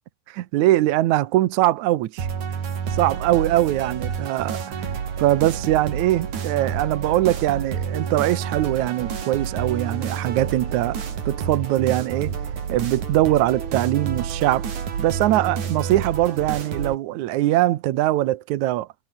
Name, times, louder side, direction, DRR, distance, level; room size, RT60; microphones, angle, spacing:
voice 1, 0.3-2.3 2.9-4.9 5.2-11.0 11.3-12.3 12.7-14.7 15.0-18.9, right 15 dB, 70° right, 1.9 m, -22 dB
sound 1, 2.2-17.0, right 7 dB, 55° right, 4.2 m, -29 dB
omnidirectional pair, 4.2 m